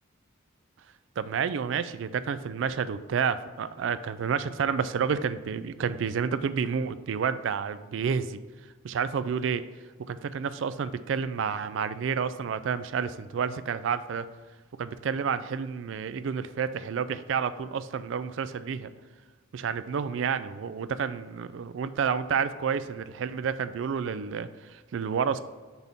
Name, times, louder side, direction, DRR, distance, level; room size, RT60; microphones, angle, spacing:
voice 1, 1.2-8.4 8.8-9.6 10.1-14.3 14.8-18.9 19.5-25.4, right 6 dB, 65° right, 13 dB, 0.3 m, -30 dB
6.1 x 3.5 x 5.4 m, 1.4 s
head